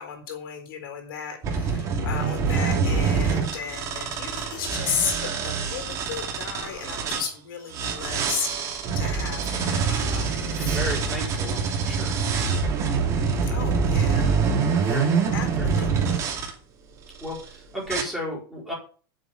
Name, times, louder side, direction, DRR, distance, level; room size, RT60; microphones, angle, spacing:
voice 1, 0.0-10.8 13.4-15.0 15.3-16.2, left 7 dB, 70° left, 5 dB, 4.1 m, -34 dB
sound 1, 1.4-7.3 7.7-16.5 17.1-17.5 17.9-18.0, right 5 dB, 25° right, 2.6 m, -25 dB
voice 2, 10.6-12.2 14.4-15.3 15.6-15.7 17.2-18.7, equal, ahead, -4 dB, 5.0 m, -34 dB
8.9 x 7.5 x 7.6 m, 0.40 s
supercardioid pair, 165°, 12 cm